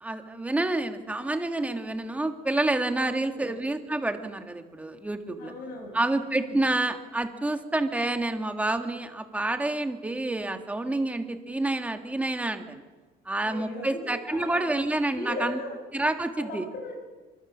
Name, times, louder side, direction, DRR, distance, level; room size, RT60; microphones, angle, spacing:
voice 1, 0.0-5.5 5.9-12.8 13.2-15.6 15.9-16.6, right 2 dB, 10° right, 6 dB, 1.7 m, -28 dB
voice 2, 3.1-3.6 5.4-6.6 13.4-14.6 15.1-15.8 16.4-16.9, left 2 dB, 65° left, 2 dB, 5.3 m, -38 dB
26.5 x 24.0 x 7.3 m, 1.3 s
cardioid pair, 170°, 17 cm